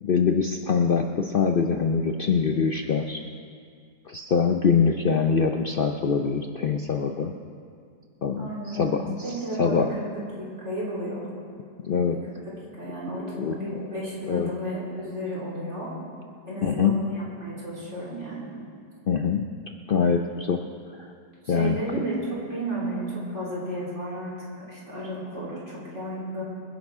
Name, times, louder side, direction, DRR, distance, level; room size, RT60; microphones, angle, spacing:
voice 1, 0.0-3.2 4.1-7.3 8.2-9.3 9.6-9.9 11.8-12.2 13.3-13.5 14.3-14.5 16.6-17.0 19.1-19.5 19.9-20.6 21.5-21.8, left 6 dB, 80° left, 4 dB, 0.4 m, -24 dB
voice 2, 8.4-11.3 12.8-15.9 16.5-18.5 21.4-26.4, right 1 dB, 40° right, -6 dB, 3.9 m, -33 dB
26.0 x 10.5 x 3.6 m, 2.2 s
omnidirectional pair, 1.8 m